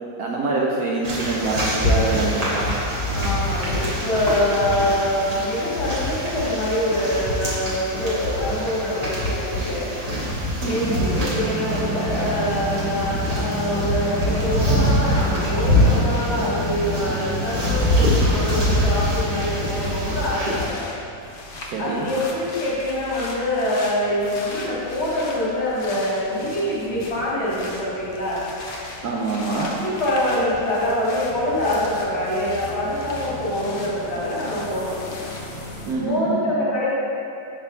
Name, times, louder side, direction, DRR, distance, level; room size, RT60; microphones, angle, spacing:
voice 1, 0.2-2.7 10.6-11.0 21.6-22.1 29.0-29.8 35.9-36.7, right 3 dB, 70° right, -3 dB, 1.0 m, -25 dB
sound 1, 1.0-20.7, left 1 dB, 25° right, 1.1 m, -24 dB
voice 2, 3.1-9.9 10.6-20.9 21.8-28.4 29.8-34.9 36.0-36.9, left 1 dB, 40° left, -8 dB, 1.6 m, -25 dB
sound 2, 10.8-19.9, right 1 dB, 10° left, 1.2 m, -29 dB
sound 3, 19.5-36.0, left 2 dB, 80° left, 0.4 m, -38 dB
5.8 x 3.4 x 5.6 m, 2.6 s
omnidirectional pair, 1.9 m